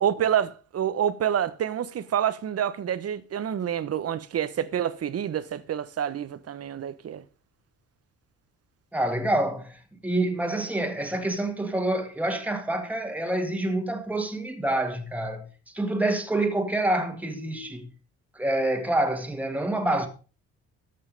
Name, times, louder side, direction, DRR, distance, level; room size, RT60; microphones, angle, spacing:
voice 1, 0.0-7.2, right 9 dB, 55° right, 1.1 m, -27 dB
voice 2, 8.9-15.5 15.7-17.9 18.4-20.1, right 1 dB, 5° right, 2.0 m, -27 dB
13.5 x 5.6 x 5.3 m
cardioid pair, 90°, 30 cm